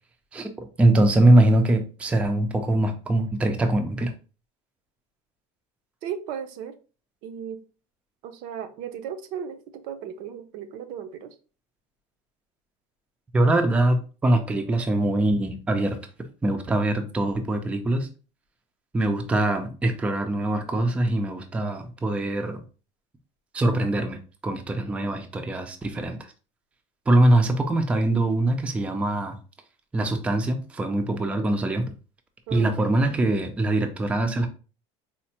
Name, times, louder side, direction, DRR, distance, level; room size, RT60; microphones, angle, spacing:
voice 1, 0.3-4.1 13.3-16.0 16.4-18.1 18.9-22.6 23.5-26.2 27.1-29.4 29.9-31.9 32.5-34.5, right 1 dB, 10° right, 0.4 m, -23 dB
voice 2, 6.0-6.8 7.2-7.6 8.2-11.4 32.5-32.7, right 8 dB, 65° right, 0.5 m, -36 dB
4.2 x 2.0 x 2.8 m
cardioid pair, 140°, 15 cm